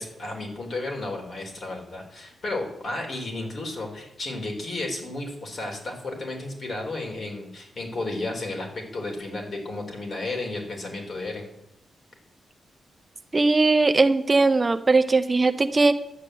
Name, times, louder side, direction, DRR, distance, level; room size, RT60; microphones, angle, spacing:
voice 1, 0.0-11.5, left 2 dB, 50° left, 2 dB, 3.7 m, -33 dB
voice 2, 13.3-15.9, right 3 dB, 25° right, 9 dB, 0.6 m, -19 dB
11.5 x 8.2 x 7.8 m, 0.87 s
cardioid pair, 100°, 0 cm